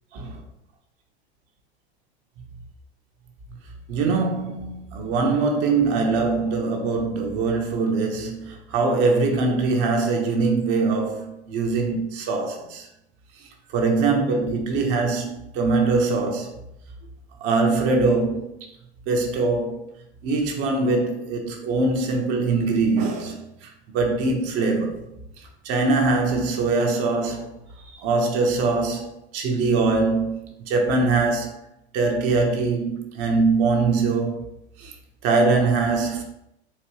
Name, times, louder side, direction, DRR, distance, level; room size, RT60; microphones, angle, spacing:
voice 1, 3.9-12.9 13.7-16.5 17.4-18.5 19.1-19.9 20.2-25.0 25.6-27.5 27.8-31.6 31.9-34.4 34.8-34.9 35.2-36.2, right 3 dB, 45° right, 1.0 m, -22 dB
4.4 x 3.0 x 3.0 m
hypercardioid pair, 95°, 33 cm